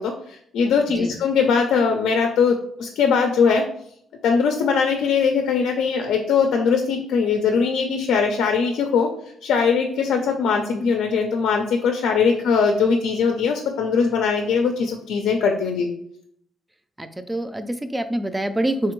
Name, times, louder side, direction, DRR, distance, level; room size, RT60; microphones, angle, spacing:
voice 1, 0.0-3.7 4.2-9.1 9.4-15.9, left 5 dB, 80° left, 3 dB, 0.4 m, -21 dB
voice 2, 17.0-18.9, right 1 dB, 15° right, 10 dB, 0.4 m, -26 dB
3.3 x 3.3 x 3.0 m, 0.68 s
cardioid pair, 90°, 0 cm